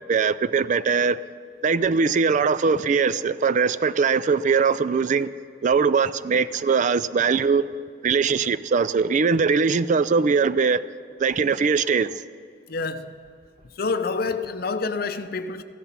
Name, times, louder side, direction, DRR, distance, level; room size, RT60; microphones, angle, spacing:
voice 1, 0.1-1.2 1.6-5.3 5.6-7.7 8.0-10.8 11.2-12.2, right 5 dB, 45° right, 0.3 m, -21 dB
voice 2, 12.7-13.1 13.8-15.6, left 4 dB, 55° left, 0.7 m, -27 dB
15.0 x 12.0 x 5.8 m
head